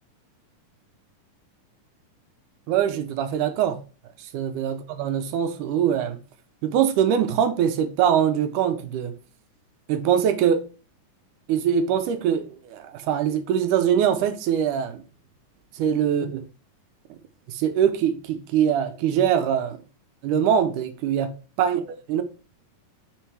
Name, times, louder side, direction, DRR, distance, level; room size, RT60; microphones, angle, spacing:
voice 1, 2.7-3.8 4.3-6.2 6.6-9.1 9.9-10.7 11.5-15.0 15.8-16.5 17.5-19.8 20.2-21.3 21.6-21.8 22.1-22.2, right 9 dB, 80° right, 2.1 m, -23 dB
4.8 x 4.5 x 4.5 m
omnidirectional pair, 3.8 m